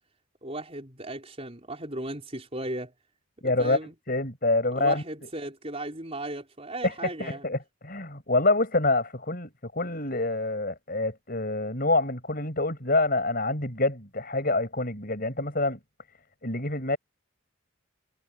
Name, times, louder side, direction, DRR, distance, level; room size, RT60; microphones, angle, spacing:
voice 1, 0.4-2.9 3.4-3.9 4.7-7.5, right 1 dB, 30° right, 4.8 m, -36 dB
voice 2, 3.4-3.8 4.1-5.0 6.8-6.9 7.2-7.6 7.8-15.8 16.4-17.0, left 2 dB, 40° left, 7.2 m, -26 dB
head